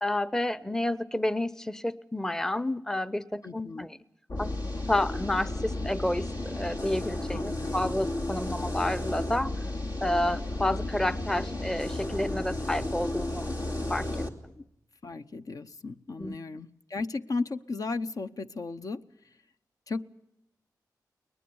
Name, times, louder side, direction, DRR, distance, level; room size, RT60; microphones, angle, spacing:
voice 1, 0.0-4.0 4.4-4.5 4.9-9.5 10.0-13.5 13.9-14.1 14.4-14.5 16.2-16.4, left 1 dB, 5° left, 16 dB, 0.7 m, -30 dB
voice 2, 3.4-3.9 7.3-7.9 14.6-14.7 15.0-19.0 19.9-20.0, left 3 dB, 55° left, 9 dB, 0.8 m, -35 dB
sound 1, 4.3-14.3, left 1 dB, 75° left, 2.8 m, -33 dB
22.5 x 19.5 x 7.0 m, 0.82 s
cardioid pair, 65°, 7 cm